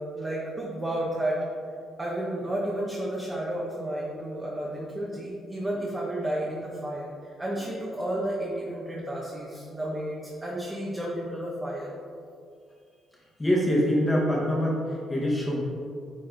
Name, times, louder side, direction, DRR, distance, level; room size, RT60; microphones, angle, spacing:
voice 1, 0.0-1.4 2.0-11.9, right 1 dB, 20° right, -4 dB, 1.2 m, -32 dB
voice 2, 13.2-15.6, equal, 15° left, -4 dB, 1.4 m, -25 dB
9.4 x 4.1 x 3.9 m, 2.3 s
cardioid pair, 90°, 0 cm